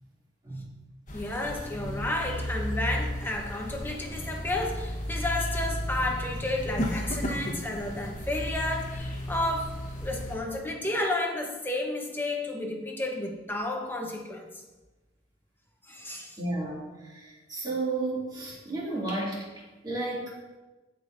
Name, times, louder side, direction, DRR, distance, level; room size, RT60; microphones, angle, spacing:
sound 1, 1.1-10.4, equal, 45° left, 1.2 m, -34 dB
voice 1, 1.1-14.6 15.8-16.4, left 1 dB, 10° left, 0 dB, 1.0 m, -32 dB
voice 2, 16.4-20.4, right 2 dB, 25° right, -6 dB, 2.7 m, -33 dB
15.5 x 5.1 x 2.7 m, 1.2 s
head